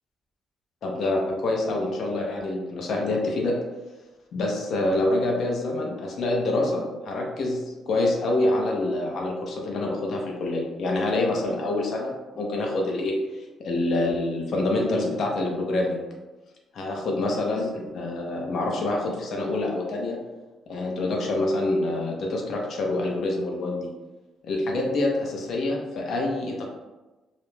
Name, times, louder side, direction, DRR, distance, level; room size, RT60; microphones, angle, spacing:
voice 1, 0.8-3.6 4.3-13.2 13.6-16.0 16.7-20.2 20.7-23.9 24.4-26.7, left 2 dB, 65° left, 0 dB, 0.6 m, -26 dB
2.5 x 2.1 x 3.1 m, 1.1 s
cardioid pair, 90°, 0 cm